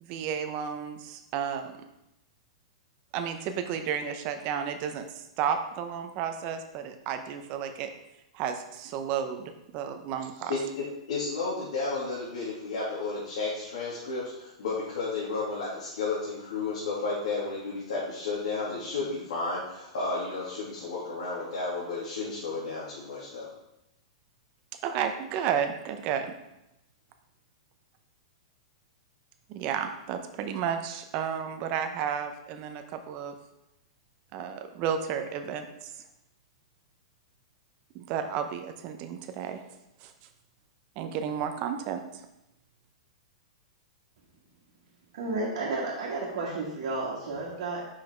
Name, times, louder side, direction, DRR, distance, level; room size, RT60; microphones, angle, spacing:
voice 1, 0.0-1.9 3.1-7.9 8.3-10.5 24.8-26.3 29.5-33.3 34.3-35.9 37.9-39.6 40.0-40.1 41.0-42.2, right 8 dB, 35° right, 7 dB, 0.7 m, -32 dB
voice 2, 10.8-23.5, left 3 dB, 80° left, -8 dB, 2.4 m, -32 dB
voice 3, 45.1-47.9, right 3 dB, 65° right, -5 dB, 1.6 m, -32 dB
5.6 x 5.1 x 4.5 m, 0.87 s
hypercardioid pair, 150°, 3 cm